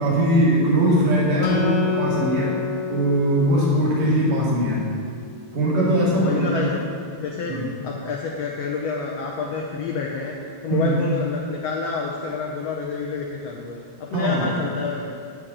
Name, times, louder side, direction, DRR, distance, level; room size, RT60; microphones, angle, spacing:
voice 1, 0.0-2.5 2.9-4.9 5.5-6.6 7.5-7.7 10.7-10.9 14.1-14.5, right 1 dB, 55° right, -5 dB, 3.3 m, -20 dB
Acoustic guitar, 1.4-4.9, left 7 dB, 85° left, 3.1 m, -28 dB
voice 2, 6.0-6.8 7.1-15.1, left 4 dB, 70° left, -1 dB, 1.6 m, -28 dB
11.5 x 4.7 x 8.0 m, 2.2 s
omnidirectional pair, 3.9 m